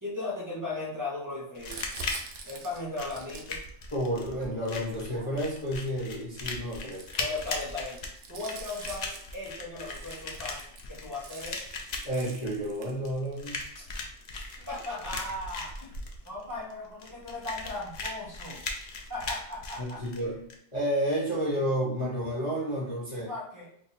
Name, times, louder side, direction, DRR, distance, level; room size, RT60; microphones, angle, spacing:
voice 1, 0.0-1.8 2.5-3.6 7.2-8.0 8.3-10.6 10.9-11.6 13.8-13.9 14.3-15.9 16.2-18.6 19.1-20.0 23.1-23.7, left 2 dB, 15° right, -5 dB, 0.9 m, -37 dB
sound 1, 1.6-20.6, left 3 dB, 60° left, 0.4 m, -39 dB
Crumpling crinkling, 1.6-5.7 6.4-13.5 14.3-14.4 14.6-16.2, right 3 dB, 60° right, 0.8 m, -45 dB
voice 2, 3.9-7.2 12.0-13.6 19.8-20.4 20.7-23.3, equal, 30° left, -7 dB, 0.7 m, -31 dB
2.7 x 2.6 x 4.1 m, 0.65 s
omnidirectional pair, 1.2 m